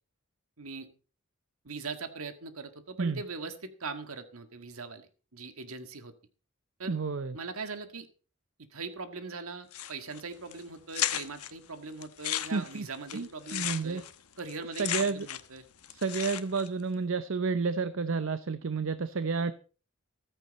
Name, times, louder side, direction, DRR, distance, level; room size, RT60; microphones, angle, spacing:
voice 1, 0.6-0.9 1.6-6.1 6.8-6.9 7.3-8.1 8.7-14.1 14.4-15.7, right 4 dB, 75° right, 9 dB, 1.7 m, -41 dB
voice 2, 6.9-7.4 12.5-12.9 13.1-14.0 14.8-15.3 15.9-19.5, right 4 dB, 60° right, 13 dB, 0.6 m, -30 dB
sound 1, 9.7-10.2 10.5-10.6 10.9-11.5 12.0-15.6 15.8-16.7, left 12 dB, 85° left, 1.0 m, -34 dB
14.5 x 13.5 x 4.1 m, 0.37 s
head